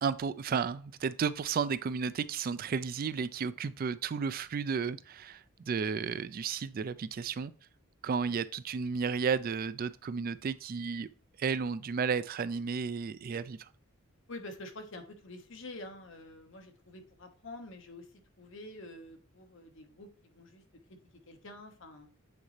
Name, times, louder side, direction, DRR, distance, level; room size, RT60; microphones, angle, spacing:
voice 1, 0.0-7.5 8.0-11.1 11.4-13.7, right 6 dB, 45° right, 0.3 m, -33 dB
voice 2, 14.3-18.1 18.4-20.6 21.3-22.1, left 2 dB, 65° left, 1.2 m, -47 dB
8.6 x 4.1 x 3.1 m
head